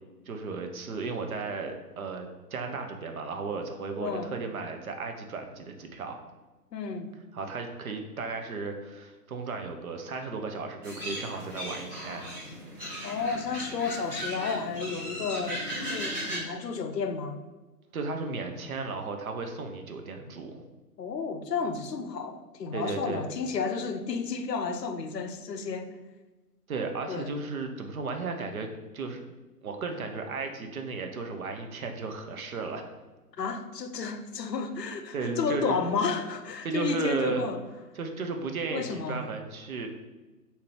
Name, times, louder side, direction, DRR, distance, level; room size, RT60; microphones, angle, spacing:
voice 1, 0.3-6.2 7.3-12.3 17.9-20.6 22.7-23.2 26.7-28.7 28.9-29.2 29.6-32.9 35.1-35.8 36.6-37.5 38.0-39.9, right 4 dB, 60° right, 0.6 m, -34 dB
voice 2, 4.0-4.4 6.7-7.1 13.0-17.4 21.0-25.9 27.1-27.3 33.4-37.6 38.7-39.3, left 5 dB, 90° left, 0.5 m, -32 dB
sound 1, 10.8-16.4, equal, 15° right, 1.0 m, -37 dB
3.6 x 2.8 x 2.9 m
figure-of-eight pair, 125°, 47 cm